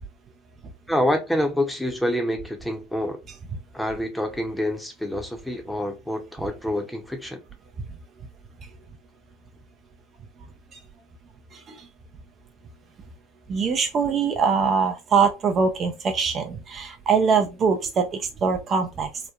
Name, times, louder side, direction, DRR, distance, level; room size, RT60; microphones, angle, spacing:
voice 1, 0.9-3.2 3.7-7.4, left 1 dB, 5° left, 0.7 m, -27 dB
voice 2, 11.5-11.9 13.5-19.1, right 5 dB, 40° right, 0.4 m, -23 dB
2.9 x 2.1 x 2.3 m
hypercardioid pair, 80°, 0 cm